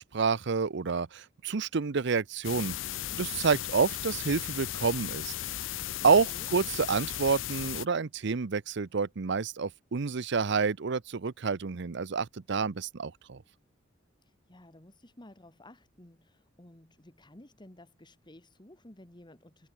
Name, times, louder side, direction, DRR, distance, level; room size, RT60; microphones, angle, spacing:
voice 1, 0.0-2.8 3.1-5.3 6.0-13.4, right 5 dB, 65° right, 0.7 m, -28 dB
sound 1, 2.4-7.9, left 13 dB, 75° left, 0.5 m, -36 dB
voice 2, 6.0-6.5 14.2-19.7, left 1 dB, 25° left, 1.9 m, -54 dB
head